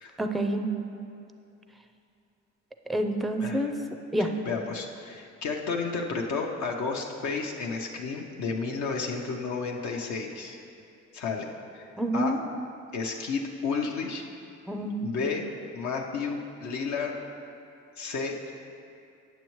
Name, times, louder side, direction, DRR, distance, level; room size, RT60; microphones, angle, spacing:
voice 1, 0.2-0.7 2.9-3.7 4.1-4.3 12.0-12.4 14.7-15.1, right 1 dB, ahead, 5 dB, 0.4 m, -27 dB
voice 2, 3.4-3.7 4.2-10.6 11.1-11.5 11.7-12.4 12.9-14.2 15.0-15.4 15.7-17.1 18.0-18.3, left 4 dB, 70° left, 0 dB, 0.7 m, -32 dB
9.3 x 7.0 x 3.1 m, 2.6 s
cardioid pair, 90°, 30 cm